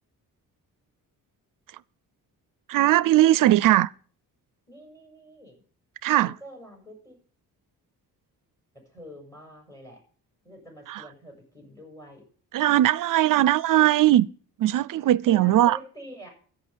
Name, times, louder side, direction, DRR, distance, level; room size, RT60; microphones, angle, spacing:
voice 1, 2.7-3.9 6.0-6.4 10.9-11.0 12.5-14.3 14.6-15.8, right 14 dB, 60° right, 0.5 m, -19 dB
voice 2, 4.7-5.6 6.2-7.2 8.9-10.0 10.4-12.2 15.3-16.3, equal, 10° left, 6.8 m, -45 dB
14.0 x 5.9 x 8.3 m
cardioid pair, 110°, 37 cm